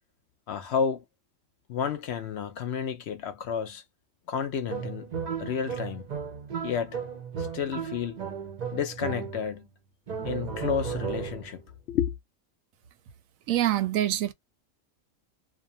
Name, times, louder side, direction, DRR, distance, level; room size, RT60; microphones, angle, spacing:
voice 1, 0.5-1.0 1.7-3.8 4.3-5.1 5.4-6.1 6.6-7.0 7.4-8.2 8.7-9.7 10.2-11.6 11.9-12.1, left 7 dB, 65° left, 0.7 m, -31 dB
sound 1, 4.7-9.7 10.1-11.6, right 6 dB, 45° right, 0.6 m, -35 dB
voice 2, 13.5-14.3, right 12 dB, 80° right, 1.0 m, -25 dB
2.6 x 2.1 x 2.6 m
omnidirectional pair, 1.4 m